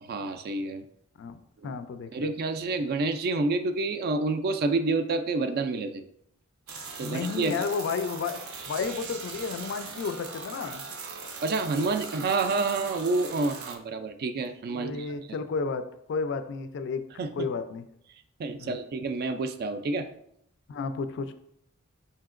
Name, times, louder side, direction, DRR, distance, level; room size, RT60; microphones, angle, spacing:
voice 1, 0.0-0.8 1.6-1.7 2.1-6.0 7.0-7.5 11.4-15.1 17.2-17.5 18.4-20.1, right 3 dB, 45° right, 9 dB, 0.3 m, -28 dB
voice 2, 1.2-2.3 7.0-8.4 8.7-10.8 14.7-17.0 17.3-17.8 18.6-18.8 20.7-21.3, left 5 dB, 60° left, 10 dB, 0.3 m, -32 dB
sound 1, 6.7-13.7, right 4 dB, 90° right, 0.6 m, -40 dB
5.5 x 2.8 x 2.4 m, 0.74 s
head